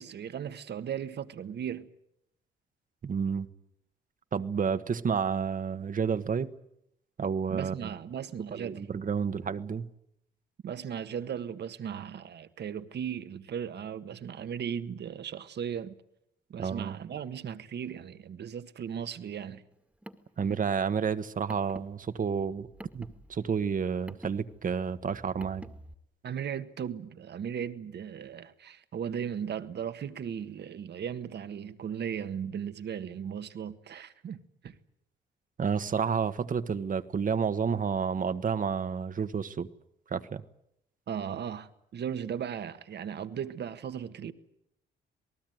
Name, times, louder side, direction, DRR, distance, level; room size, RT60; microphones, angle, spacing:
voice 1, 0.0-1.9 7.5-8.8 10.6-16.0 16.5-19.6 26.2-34.4 34.6-34.8 41.1-44.3, right 8 dB, 60° right, 1.6 m, -37 dB
voice 2, 3.0-3.5 4.3-6.5 7.2-7.9 8.5-9.9 16.6-17.0 20.4-22.7 22.9-25.7 35.6-39.7 40.1-40.4, right 6 dB, 45° right, 1.4 m, -30 dB
Car, 19.7-25.9, right 1 dB, 5° right, 1.9 m, -49 dB
27.5 x 19.0 x 9.3 m
cardioid pair, 90°, 20 cm